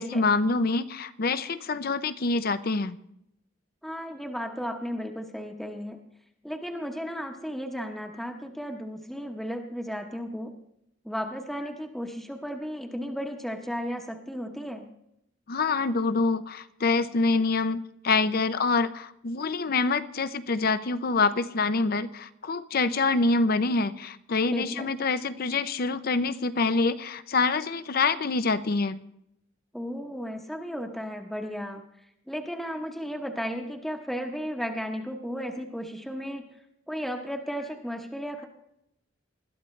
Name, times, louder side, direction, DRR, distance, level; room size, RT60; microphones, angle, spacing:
voice 1, 0.0-3.0 15.5-29.0, left 3 dB, 50° left, 13 dB, 0.6 m, -26 dB
voice 2, 3.8-6.0 6.4-10.6 11.0-14.9 24.5-24.9 29.7-31.8 32.3-36.4 36.9-38.4, equal, ahead, 2 dB, 1.0 m, -34 dB
20.5 x 12.5 x 3.2 m, 0.78 s
head